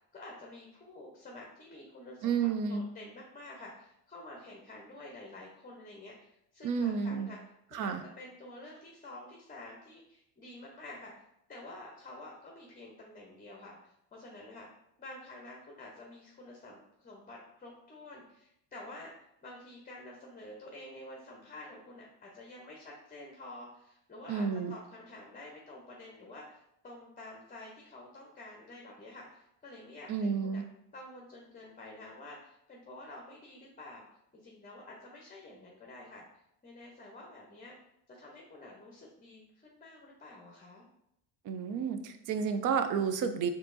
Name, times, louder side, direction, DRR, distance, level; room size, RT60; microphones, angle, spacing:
voice 1, 0.1-7.4 7.7-11.1 11.5-14.7 15.0-19.1 19.4-30.6 30.9-34.0 34.4-36.2 36.6-37.8 38.1-40.9, left 2 dB, 20° left, -1 dB, 0.7 m, -49 dB
voice 2, 2.2-2.9 6.6-7.3 7.7-8.0 24.3-24.8 30.1-30.6 41.4-43.5, right 6 dB, 45° right, 9 dB, 0.5 m, -31 dB
4.3 x 2.9 x 2.6 m, 0.79 s
hypercardioid pair, 70°, 49 cm